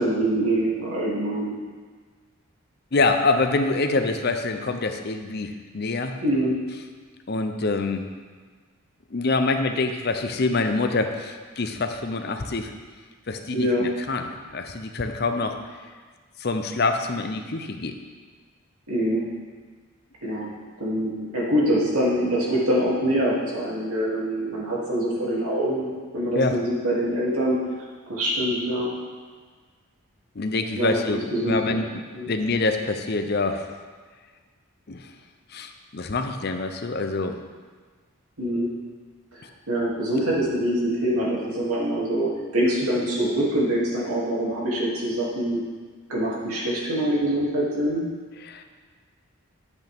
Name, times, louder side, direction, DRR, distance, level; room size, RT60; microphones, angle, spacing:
voice 1, 0.0-1.5 6.2-6.6 13.5-13.9 18.9-19.2 20.2-20.5 20.8-27.6 28.1-28.9 30.8-31.0 31.3-31.8 32.1-32.3 38.4-38.7 39.3-45.6 46.1-48.0, right 1 dB, 90° right, -5 dB, 2.6 m, -24 dB
voice 2, 2.9-6.2 7.3-8.1 9.1-12.7 13.3-15.6 16.4-18.0 26.4-26.6 30.4-31.9 32.3-33.6 34.9-35.1 35.5-37.4 48.4-48.6, left 3 dB, 45° left, 6 dB, 0.6 m, -25 dB
10.5 x 8.1 x 3.5 m, 1.5 s
head